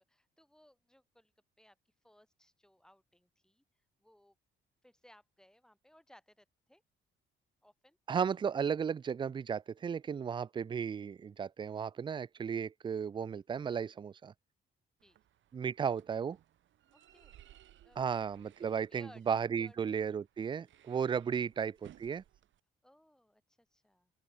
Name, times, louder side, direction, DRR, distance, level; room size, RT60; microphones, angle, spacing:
voice 1, 0.0-1.3 1.6-1.8 2.0-3.6 4.0-4.3 4.8-6.8 7.6-8.0 15.0-15.2 16.9-17.4 17.8-18.2 18.6-19.2 19.6-19.8 22.8-24.1, left 1 dB, 5° left, 2.6 m, -63 dB
voice 2, 8.1-14.3 15.5-16.4 18.0-22.2, right 7 dB, 25° right, 0.3 m, -34 dB
sound 1, 15.0-22.6, right 12 dB, 75° right, 2.0 m, -62 dB
open air
cardioid pair, 90°, 20 cm